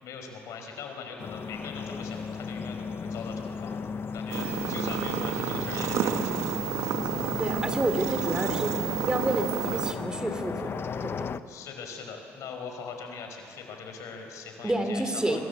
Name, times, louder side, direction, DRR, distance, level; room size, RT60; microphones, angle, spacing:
voice 1, 0.0-3.7 4.1-6.3 11.5-15.4, left 5 dB, 75° left, 4 dB, 5.0 m, -41 dB
sound 1, 1.2-11.4, left 6 dB, 45° left, 0.9 m, -35 dB
sound 2, 4.3-9.9, right 8 dB, 70° right, 1.6 m, -30 dB
voice 2, 7.4-8.8 9.1-11.3 14.6-15.4, right 1 dB, 15° right, 7 dB, 3.2 m, -29 dB
25.5 x 23.5 x 8.3 m, 2.6 s
supercardioid pair, 65°, 6 cm